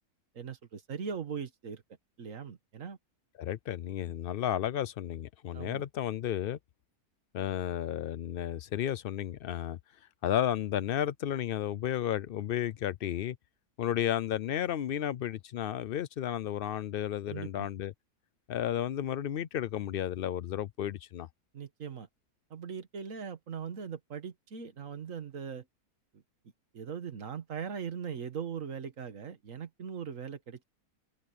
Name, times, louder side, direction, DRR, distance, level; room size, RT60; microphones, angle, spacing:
voice 1, 0.3-1.8 2.2-3.0 5.5-5.8 17.3-17.7 21.5-22.1 22.5-25.7 26.7-30.6, right 7 dB, 60° right, 1.9 m, -40 dB
voice 2, 3.4-6.6 7.3-9.8 10.2-13.4 13.8-17.9 18.5-21.3, left 11 dB, 85° left, 0.5 m, -33 dB
omnidirectional pair, 1.6 m